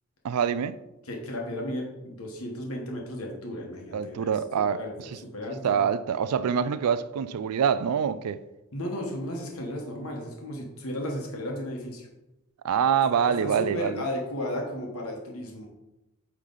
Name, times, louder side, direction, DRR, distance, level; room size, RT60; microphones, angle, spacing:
voice 1, 0.2-0.8 3.9-4.8 5.6-8.4 12.6-14.0, right 7 dB, 85° right, 0.4 m, -25 dB
voice 2, 1.0-5.8 8.7-12.1 13.1-15.7, left 1 dB, 75° left, 1.2 m, -34 dB
8.8 x 3.2 x 3.9 m
head